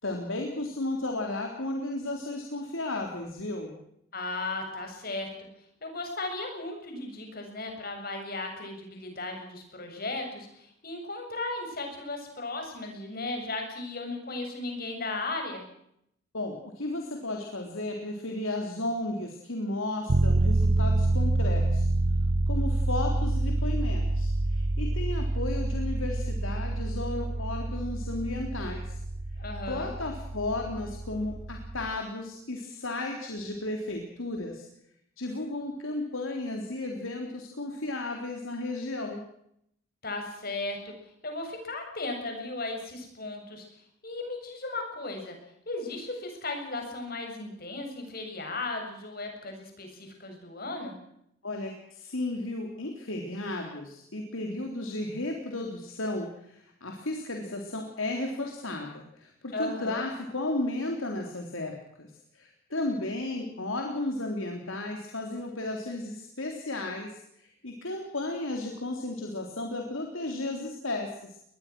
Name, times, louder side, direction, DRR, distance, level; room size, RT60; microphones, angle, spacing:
voice 1, 0.0-3.8 16.3-21.9 22.5-29.0 29.7-34.7 35.2-39.2 51.4-71.4, left 2 dB, 85° left, 2 dB, 3.7 m, -34 dB
voice 2, 4.1-5.5 5.8-15.6 29.4-29.9 40.0-40.9 41.2-43.7 44.0-45.3 45.7-51.0 59.5-60.0, left 2 dB, 50° left, 3 dB, 7.5 m, -36 dB
sound 1, 20.1-32.0, right 2 dB, 55° right, 1.0 m, -27 dB
23.0 x 21.0 x 6.2 m, 0.75 s
head